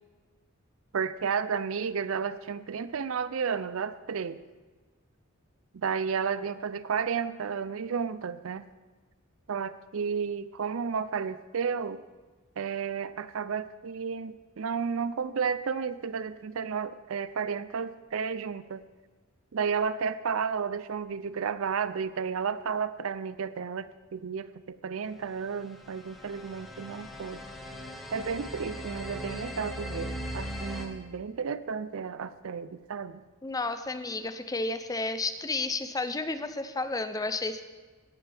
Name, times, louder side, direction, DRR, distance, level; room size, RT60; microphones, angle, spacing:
voice 1, 0.9-4.4 5.7-8.7 9.5-12.0 12.6-18.8 19.5-27.4 28.1-33.2, right 6 dB, 75° right, 15 dB, 0.5 m, -32 dB
sound 1, 25.4-30.9, equal, ahead, 1.4 m, -39 dB
voice 2, 33.4-37.6, left 3 dB, 15° left, 9 dB, 0.6 m, -32 dB
17.5 x 9.0 x 3.5 m, 1.3 s
head